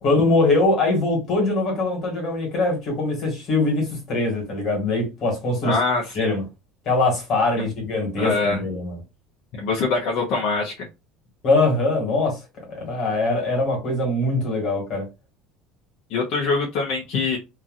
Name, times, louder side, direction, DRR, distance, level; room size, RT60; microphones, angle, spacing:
voice 1, 0.0-5.8 6.1-6.4 6.8-9.0 11.4-12.4 12.7-15.0, left 2 dB, 35° left, 1.7 m, -22 dB
voice 2, 5.6-6.4 7.6-7.7 8.2-8.6 9.6-10.9 16.1-17.4, left 4 dB, 50° left, 0.8 m, -24 dB
2.9 x 2.5 x 2.5 m
cardioid pair, 180°, 0 cm